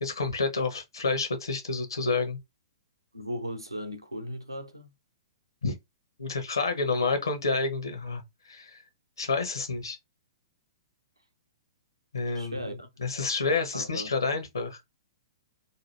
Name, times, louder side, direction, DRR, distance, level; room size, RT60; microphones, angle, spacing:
voice 1, 0.0-2.4 5.6-5.8 6.2-8.2 8.5-8.8 9.2-10.0 12.1-14.8, left 4 dB, 70° left, 0.8 m, -29 dB
voice 2, 3.1-4.9 12.3-12.9 13.7-14.1, equal, 85° right, 0.7 m, -37 dB
2.8 x 2.4 x 3.1 m
figure-of-eight pair, 110°, 2 cm